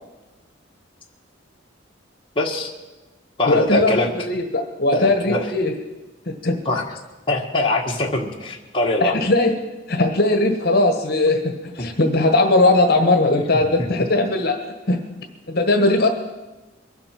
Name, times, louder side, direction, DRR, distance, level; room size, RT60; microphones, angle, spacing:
voice 1, 2.3-2.7 3.4-4.1 4.9-5.5 6.6-6.8 7.3-9.2, left 2 dB, 25° left, -1 dB, 1.6 m, -22 dB
voice 2, 3.5-5.7 6.3-6.6 9.0-9.5 9.9-14.6 14.9-15.0 15.5-16.1, left 2 dB, 55° left, 4 dB, 1.4 m, -19 dB
22.5 x 7.9 x 5.9 m, 1.1 s
head